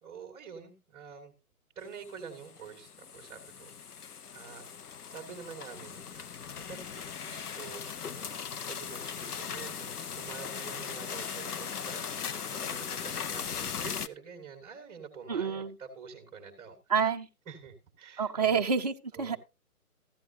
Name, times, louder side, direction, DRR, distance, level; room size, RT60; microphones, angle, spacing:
voice 1, 0.0-1.3 1.7-3.7 4.3-4.6 5.1-6.3 6.7-12.1 12.5-16.8 17.5-18.6 19.1-19.4, right 6 dB, 10° right, 1.6 m, -47 dB
Bamboo Creaking in Wind, 2.0-14.1, left 7 dB, 80° left, 0.8 m, -39 dB
voice 2, 15.3-15.8 16.9-17.3 18.2-19.4, right 6 dB, 25° right, 0.6 m, -28 dB
15.0 x 10.5 x 2.7 m
hypercardioid pair, 155°, 45 cm